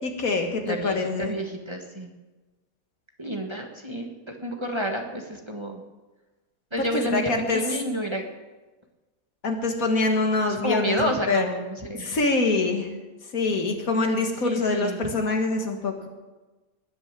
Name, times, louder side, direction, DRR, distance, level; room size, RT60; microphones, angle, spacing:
voice 1, 0.0-1.3 6.8-7.6 9.4-11.5 11.9-12.9 13.3-16.1, left 3 dB, 60° left, 4 dB, 2.2 m, -25 dB
voice 2, 0.6-2.1 3.2-5.8 6.7-8.2 10.5-12.2 14.4-15.0, equal, 20° right, 3 dB, 1.4 m, -30 dB
20.0 x 6.8 x 7.5 m, 1.2 s
omnidirectional pair, 1.7 m